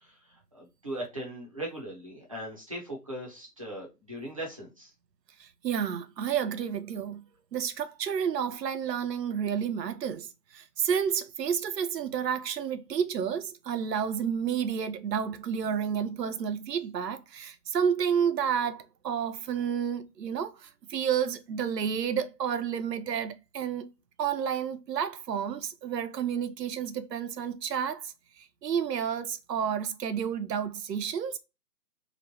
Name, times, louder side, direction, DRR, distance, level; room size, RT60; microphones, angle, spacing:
voice 1, 0.0-4.9, right 1 dB, 25° right, 0.5 m, -39 dB
voice 2, 5.4-7.2 7.5-10.3 10.5-23.9 24.2-31.4, right 8 dB, 85° right, 0.6 m, -30 dB
2.9 x 2.1 x 2.7 m
figure-of-eight pair, 150°, 48 cm